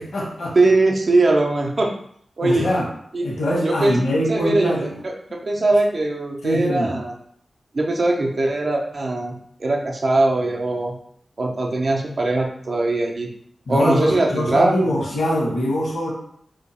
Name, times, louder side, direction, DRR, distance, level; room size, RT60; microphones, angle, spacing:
voice 1, 0.0-0.5 2.4-2.8 3.2-4.9 6.4-6.9 13.7-16.1, equal, 85° left, -4 dB, 1.2 m, -23 dB
voice 2, 0.5-1.9 2.4-2.7 3.1-3.4 3.6-4.0 4.3-4.7 5.0-5.1 5.4-7.1 7.7-11.0 11.4-13.3 13.7-15.0, right 2 dB, 40° right, 1 dB, 0.5 m, -20 dB
2.8 x 2.2 x 4.0 m, 0.66 s
wide cardioid pair, 170°, 0 cm